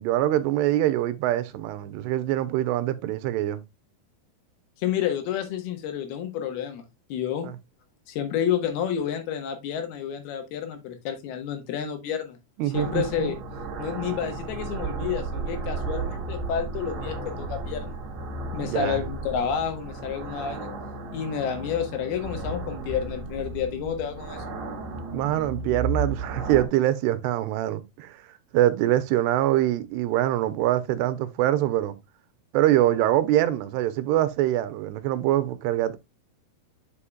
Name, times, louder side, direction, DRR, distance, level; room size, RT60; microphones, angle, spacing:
voice 1, 0.0-3.6 7.4-7.6 12.6-13.4 18.6-19.0 25.1-28.2 28.5-32.0 32.5-36.0, right 13 dB, 85° right, 2.8 m, -24 dB
voice 2, 4.8-7.5 8.1-12.4 12.7-13.4 13.8-18.0 18.5-20.7 21.1-24.4, left 8 dB, 75° left, 3.0 m, -30 dB
sound 1, 12.7-26.7, right 3 dB, 40° right, 2.1 m, -34 dB
9.9 x 5.6 x 2.2 m
omnidirectional pair, 4.7 m